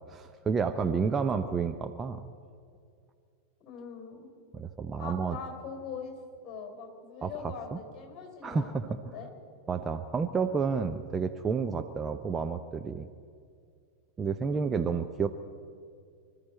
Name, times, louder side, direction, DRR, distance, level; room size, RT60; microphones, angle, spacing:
voice 1, 0.1-2.2 4.5-5.4 7.2-7.8 8.4-9.1 9.7-13.1 14.2-15.3, right 5 dB, 20° right, 7 dB, 0.6 m, -30 dB
voice 2, 3.6-4.3 5.0-6.2 6.4-9.3 14.5-14.7, left 6 dB, 30° left, 2 dB, 4.1 m, -42 dB
25.0 x 13.5 x 4.3 m, 2.3 s
figure-of-eight pair, 90°, 0 cm